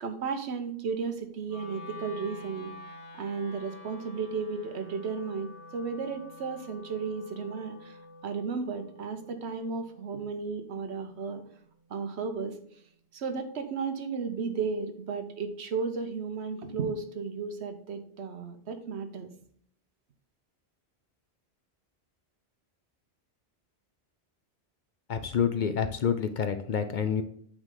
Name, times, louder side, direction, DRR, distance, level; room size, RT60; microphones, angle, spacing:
voice 1, 0.0-2.7 3.1-8.0 8.2-11.4 11.9-12.6 13.1-19.3, right 5 dB, 80° right, 8 dB, 1.1 m, -34 dB
Wind instrument woodwind instrument, 1.5-11.6, left 1 dB, 80° left, 1.5 m, -49 dB
voice 2, 25.1-27.2, left 7 dB, 55° left, 9 dB, 0.6 m, -28 dB
8.7 x 3.7 x 3.7 m, 0.64 s
omnidirectional pair, 1.1 m